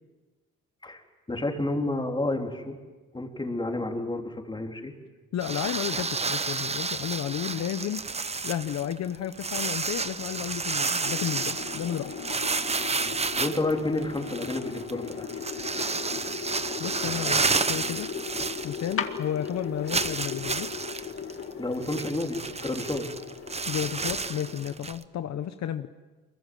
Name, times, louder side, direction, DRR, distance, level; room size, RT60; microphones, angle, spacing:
voice 1, 1.3-2.8 3.1-4.9 13.4-15.3 21.6-23.1, left 2 dB, 15° left, 2 dB, 3.6 m, -30 dB
voice 2, 5.3-8.0 8.4-12.1 16.8-18.1 18.6-20.7 23.7-25.9, left 10 dB, 60° left, 10 dB, 1.0 m, -32 dB
sound 1, 5.4-19.2 19.5-19.6 19.9-25.0, right 4 dB, 20° right, 0.9 m, -31 dB
sound 2, 11.0-24.7, left 7 dB, 45° left, 2.1 m, -38 dB
24.0 x 22.5 x 7.7 m, 1.3 s
cardioid pair, 90°, 30 cm